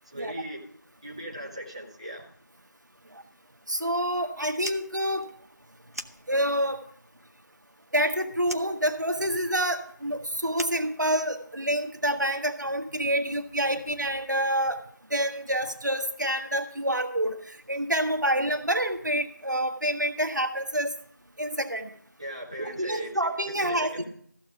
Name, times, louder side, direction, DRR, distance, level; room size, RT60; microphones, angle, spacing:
voice 1, 0.1-0.6 1.0-2.2 22.2-23.3 23.6-24.0, right 1 dB, 20° right, -3 dB, 0.9 m, -38 dB
voice 2, 3.7-5.3 6.3-6.8 7.9-14.8 15.1-20.9 21.4-21.9 22.6-24.1, right 1 dB, 70° right, 6 dB, 1.4 m, -27 dB
Fire, 4.5-6.8 7.1-8.1 8.4-11.6, right 1 dB, 55° right, 0.8 m, -42 dB
14.5 x 7.0 x 4.9 m, 0.63 s
figure-of-eight pair, 175°, 10 cm